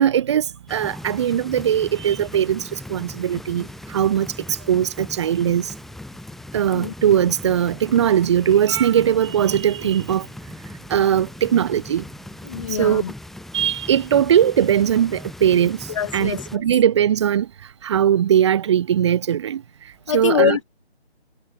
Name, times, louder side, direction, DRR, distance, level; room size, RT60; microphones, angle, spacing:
voice 1, 0.0-2.6 2.9-4.3 4.7-5.7 6.5-10.3 10.9-12.0 12.8-13.0 13.5-15.8 16.1-17.5 17.8-19.6 20.1-20.6, right 9 dB, 25° right, 6.0 m, -19 dB
sound 1, 0.7-16.6, left 1 dB, ahead, 6.0 m, -39 dB
voice 2, 12.4-13.1 15.9-16.6 20.1-20.6, left 8 dB, 30° left, 5.4 m, -24 dB
figure-of-eight pair, 165°, 33 cm